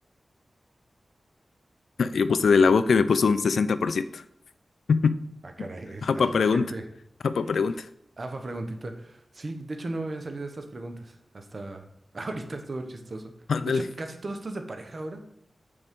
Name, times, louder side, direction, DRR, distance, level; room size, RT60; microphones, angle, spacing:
voice 1, 2.0-4.2 4.9-5.2 6.0-6.7 7.2-7.9 13.5-13.8, left 5 dB, 90° left, 13 dB, 0.3 m, -22 dB
voice 2, 5.4-6.8 8.2-11.8 12.1-13.3 13.7-15.2, right 2 dB, 55° right, 6 dB, 0.9 m, -36 dB
6.5 x 5.4 x 3.6 m, 0.72 s
cardioid pair, 65°, 0 cm